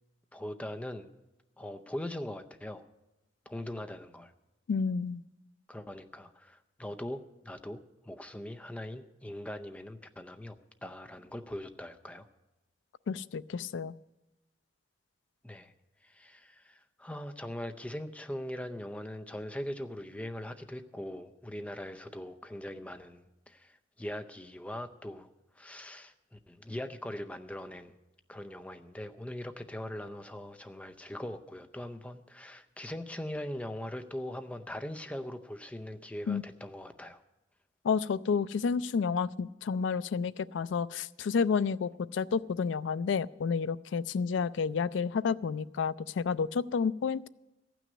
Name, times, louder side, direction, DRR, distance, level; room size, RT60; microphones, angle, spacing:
voice 1, 0.3-1.1 1.6-2.9 3.5-4.3 5.7-12.2 15.4-15.7 16.0-25.3 25.6-27.9 28.3-37.2, left 1 dB, 5° left, 8 dB, 0.6 m, -41 dB
voice 2, 4.7-5.2 13.1-13.9 36.3-36.4 37.8-47.3, left 5 dB, 75° left, 17 dB, 0.4 m, -30 dB
14.5 x 6.2 x 9.5 m, 0.99 s
head